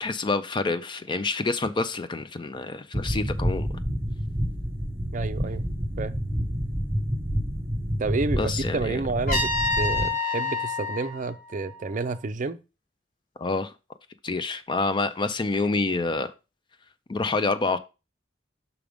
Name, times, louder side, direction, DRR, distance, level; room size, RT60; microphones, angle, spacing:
voice 1, 0.0-3.7 8.4-9.0 13.4-13.7 14.2-16.3 17.1-17.8, left 3 dB, 25° left, 0.4 m, -27 dB
sound 1, 2.9-10.1, equal, 10° right, 1.2 m, -29 dB
voice 2, 5.1-6.2 8.0-12.6, right 3 dB, 40° right, 0.5 m, -30 dB
Trumpet, 9.3-12.2, left 3 dB, 50° left, 1.4 m, -28 dB
5.9 x 5.1 x 3.5 m
head